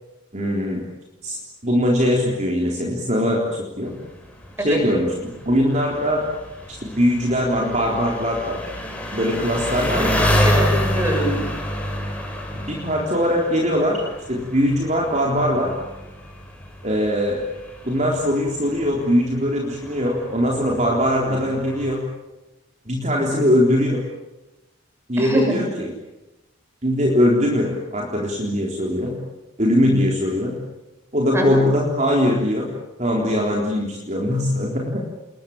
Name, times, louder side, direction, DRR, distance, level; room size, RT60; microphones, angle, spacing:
voice 1, 0.3-0.8 1.2-1.4 1.6-3.4 3.8-3.9 4.6-6.2 6.7-8.6 9.1-10.2 12.7-14.0 14.3-15.7 16.8-17.4 17.8-22.0 22.9-24.0 25.1-25.9 26.8-29.2 29.6-30.6 31.1-32.7 33.0-35.1, equal, 35° right, -1 dB, 3.8 m, -21 dB
Engine, 3.9-22.0, equal, 5° left, 4.9 m, -28 dB
voice 2, 10.4-11.4 21.3-21.5 25.2-25.6 31.3-31.6, right 1 dB, 15° right, 2 dB, 7.0 m, -24 dB
28.5 x 22.0 x 8.8 m, 1.0 s
head